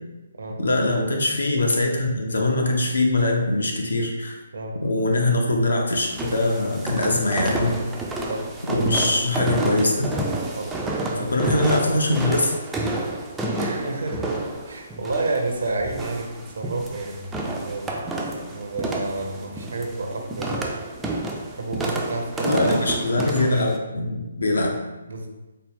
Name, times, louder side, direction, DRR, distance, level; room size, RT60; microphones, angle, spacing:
voice 1, 0.6-4.4 4.8-7.8 8.7-10.1 11.3-12.5 22.4-24.7, left 2 dB, 65° left, 1 dB, 0.6 m, -22 dB
sound 1, 6.0-23.8, right 2 dB, 10° right, 0.3 m, -30 dB
voice 2, 13.5-14.3 14.7-16.3 16.6-17.9 18.5-20.6 21.6-22.9 25.1-25.3, right 2 dB, 60° right, 2 dB, 0.5 m, -30 dB
4.0 x 2.1 x 3.5 m, 1.1 s
figure-of-eight pair, 135°, 0 cm